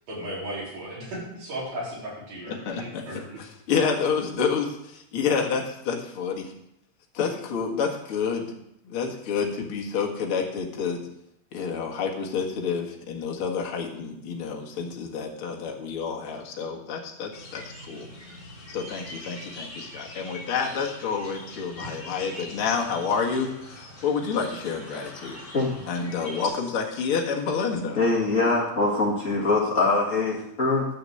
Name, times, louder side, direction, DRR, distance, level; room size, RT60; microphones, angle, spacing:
voice 1, 0.1-3.4, right 1 dB, 50° right, -5 dB, 5.5 m, -36 dB
voice 2, 2.5-3.0 3.7-6.5 7.1-8.5 8.8-11.0 11.5-18.1 18.7-25.4 25.9-28.0, left 6 dB, 50° left, 1 dB, 1.6 m, -29 dB
sound 1, 17.3-26.5, left 1 dB, 30° left, 4.2 m, -43 dB
voice 3, 27.9-30.8, left 3 dB, 70° left, -4 dB, 0.7 m, -23 dB
11.0 x 6.7 x 7.8 m, 0.78 s
omnidirectional pair, 4.7 m